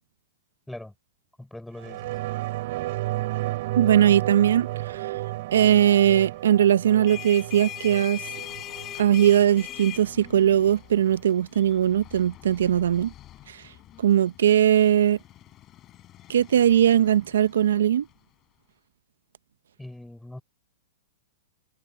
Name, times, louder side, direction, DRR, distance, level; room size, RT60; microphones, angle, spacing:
voice 1, 1.4-2.1 19.8-20.4, left 1 dB, 5° left, 4.4 m, -41 dB
sound 1, 1.8-10.8 11.1-11.2, right 18 dB, 50° right, 5.3 m, -33 dB
voice 2, 3.8-5.1 5.5-8.2 9.0-13.1 13.5-13.6 14.0-15.2 16.3-18.1, right 10 dB, 85° right, 0.7 m, -20 dB
sound 2, 6.8-18.1, left 13 dB, 25° left, 7.8 m, -43 dB
hypercardioid pair, 155°, 0 cm